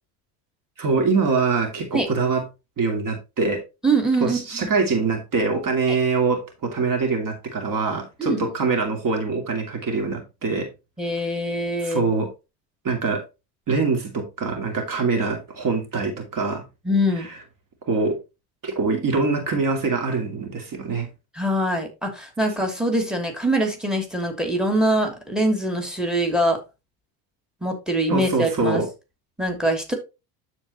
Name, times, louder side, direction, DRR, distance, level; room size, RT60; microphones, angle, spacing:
voice 1, 0.8-2.4 2.8-3.6 4.2-10.7 11.1-11.2 11.8-12.3 12.8-13.2 13.7-16.6 17.2-17.3 17.8-18.2 18.6-21.1 28.1-28.9, right 4 dB, 40° right, 2.5 m, -24 dB
voice 2, 3.8-4.7 5.9-6.0 8.2-8.5 11.0-12.1 16.8-17.3 21.3-26.6 27.6-28.8 29.4-29.9, right 1 dB, ahead, 2.7 m, -23 dB
13.0 x 4.5 x 2.9 m
hypercardioid pair, 80°, 48 cm